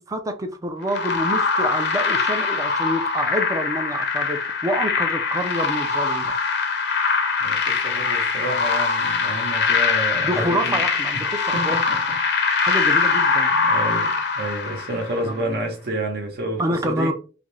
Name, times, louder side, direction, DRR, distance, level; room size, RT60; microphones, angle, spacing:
voice 1, 0.1-6.4 10.2-11.8 12.6-13.5 15.2-15.4 16.6-17.1, right 1 dB, 15° right, 0.3 m, -27 dB
sound 1, 0.9-15.3, left 4 dB, 60° left, 0.6 m, -22 dB
voice 2, 7.4-10.8 11.5-12.7 13.5-17.1, right 1 dB, 55° right, 0.7 m, -30 dB
2.6 x 2.4 x 3.1 m
head